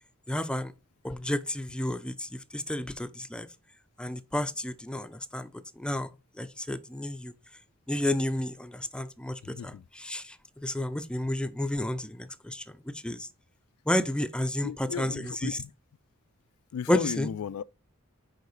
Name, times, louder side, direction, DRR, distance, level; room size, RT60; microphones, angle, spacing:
voice 1, 0.3-0.7 1.0-3.5 4.0-5.5 5.8-6.1 6.4-7.3 7.9-13.3 13.9-15.6 16.9-17.3, left 1 dB, 5° left, 0.5 m, -31 dB
voice 2, 14.6-15.7 16.7-17.6, left 7 dB, 75° left, 0.3 m, -35 dB
6.7 x 4.8 x 4.8 m
head